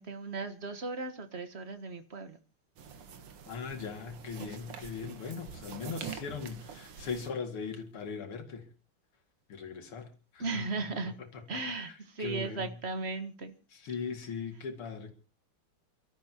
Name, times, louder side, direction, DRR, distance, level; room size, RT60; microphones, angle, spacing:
voice 1, 0.0-2.4 10.4-11.1 11.5-13.6, right 3 dB, 35° right, 1.4 m, -36 dB
sound 1, 2.8-7.3, right 7 dB, 90° right, 2.4 m, -45 dB
voice 2, 3.5-8.7 9.5-10.4 11.3-11.4 12.2-12.7 13.7-15.1, left 5 dB, 80° left, 3.1 m, -39 dB
29.0 x 13.0 x 2.9 m
omnidirectional pair, 2.4 m